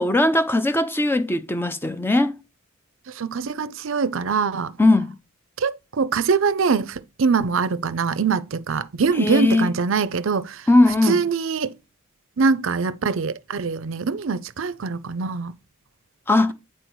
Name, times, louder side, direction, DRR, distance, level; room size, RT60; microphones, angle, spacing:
voice 1, 0.0-2.4 4.8-5.2 9.2-9.7 10.7-11.2 16.3-16.5, left 2 dB, 10° left, 0.5 m, -19 dB
voice 2, 3.1-4.7 5.6-10.6 11.1-11.7 12.4-15.5, right 5 dB, 65° right, 0.5 m, -23 dB
8.2 x 4.4 x 4.6 m
head